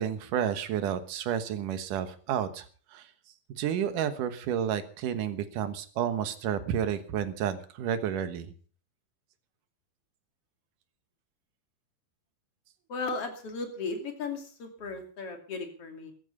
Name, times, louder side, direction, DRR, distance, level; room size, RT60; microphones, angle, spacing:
voice 1, 0.0-2.7 2.9-3.1 3.5-8.5, right 9 dB, 65° right, 10 dB, 2.6 m, -31 dB
voice 2, 12.9-16.1, left 4 dB, 40° left, 5 dB, 3.3 m, -36 dB
15.0 x 13.5 x 5.5 m, 0.41 s
omnidirectional pair, 4.4 m